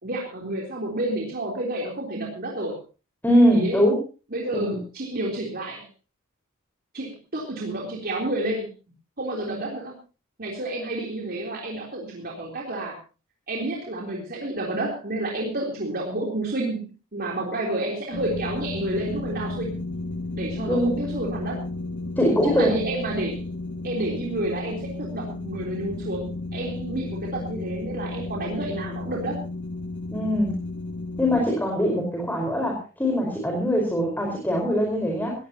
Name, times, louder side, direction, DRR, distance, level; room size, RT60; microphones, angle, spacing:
voice 1, 0.0-2.8 3.5-3.8 4.3-5.9 6.9-8.7 9.2-10.0 10.4-13.0 13.5-19.8 20.4-21.6 22.4-23.4 23.8-29.4, right 1 dB, 45° right, -2 dB, 3.6 m, -30 dB
voice 2, 3.2-4.0 4.5-4.8 20.7-20.9 22.2-22.7 30.1-30.6 31.2-35.3, equal, 10° left, 0 dB, 4.8 m, -22 dB
sound 1, 18.1-31.4, left 2 dB, 60° left, 2.3 m, -33 dB
20.5 x 16.5 x 2.9 m, 0.33 s
head